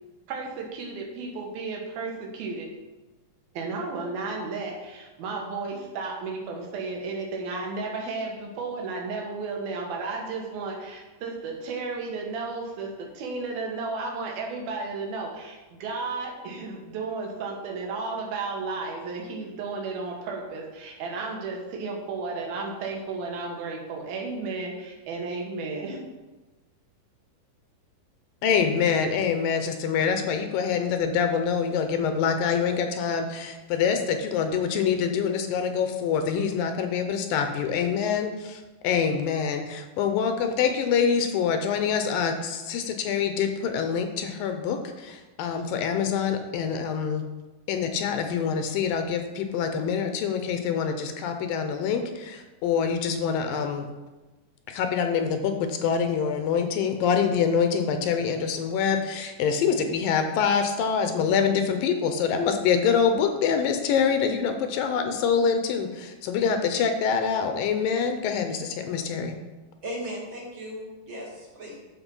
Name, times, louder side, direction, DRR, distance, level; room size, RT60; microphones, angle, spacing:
voice 1, 0.3-2.7 3.6-26.0, right 3 dB, 80° right, 0 dB, 3.4 m, -33 dB
voice 2, 28.4-47.2 47.7-53.9 54.7-69.4, left 6 dB, 80° left, 6 dB, 2.5 m, -25 dB
voice 3, 69.8-71.8, equal, 35° right, -4 dB, 2.7 m, -37 dB
13.5 x 4.7 x 5.5 m, 1.2 s
omnidirectional pair, 4.2 m